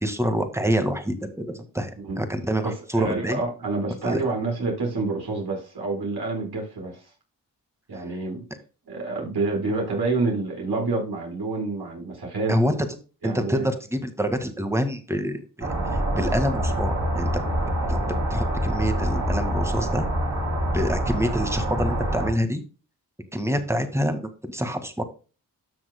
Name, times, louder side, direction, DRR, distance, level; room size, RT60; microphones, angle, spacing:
voice 1, 0.0-3.4 4.0-4.2 12.5-12.8 13.2-15.7 16.2-17.3 17.9-20.1 20.7-22.6 23.3-25.0, equal, 5° right, 1.8 m, -26 dB
voice 2, 2.6-7.0 7.9-8.4 8.9-12.6 13.2-13.7, right 3 dB, 60° right, 4.8 m, -28 dB
sound 1, 15.6-22.3, equal, 40° right, 3.4 m, -25 dB
13.0 x 6.1 x 2.2 m
supercardioid pair, 40°, 43 cm